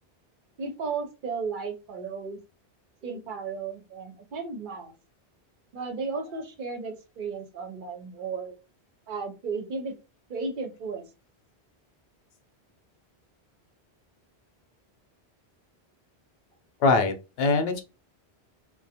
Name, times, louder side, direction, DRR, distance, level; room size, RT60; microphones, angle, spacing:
voice 1, 0.6-2.4 3.0-4.9 5.7-8.6 9.1-9.9 10.3-11.0, right 4 dB, 55° right, 5 dB, 0.7 m, -34 dB
voice 2, 16.8-17.8, left 3 dB, 70° left, 5 dB, 0.8 m, -23 dB
2.4 x 2.1 x 2.7 m, 0.28 s
omnidirectional pair, 1.1 m